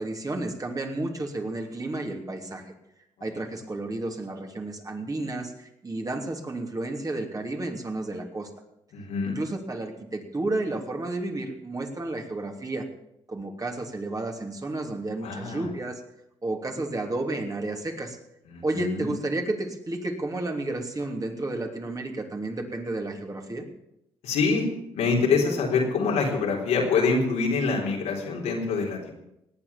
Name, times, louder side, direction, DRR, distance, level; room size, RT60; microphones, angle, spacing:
voice 1, 0.0-2.7 3.2-8.5 9.2-12.9 13.3-16.0 16.4-18.2 18.6-23.6, right 2 dB, 30° right, 3 dB, 3.1 m, -32 dB
voice 2, 8.9-9.4 15.2-15.7 18.5-19.1 24.2-24.7 24.9-29.1, left 4 dB, 80° left, -1 dB, 3.9 m, -25 dB
18.5 x 8.8 x 7.3 m, 0.83 s
supercardioid pair, 50°, 12 cm